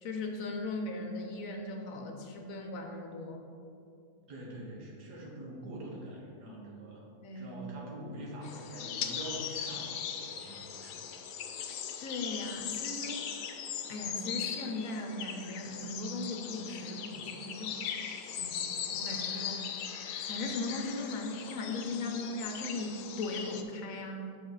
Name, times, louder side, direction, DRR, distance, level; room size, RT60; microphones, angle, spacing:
voice 1, 0.0-3.4 7.2-7.6 12.0-13.2 13.9-17.7 18.4-18.6 18.8-19.6 20.2-24.4, left 2 dB, 65° left, 3 dB, 1.0 m, -38 dB
voice 2, 4.3-7.0 7.4-11.1, right 1 dB, 85° right, -3 dB, 1.9 m, -44 dB
sound 1, 8.4-23.6, left 8 dB, 90° left, 1.2 m, -39 dB
6.9 x 6.0 x 4.0 m, 2.6 s
omnidirectional pair, 1.7 m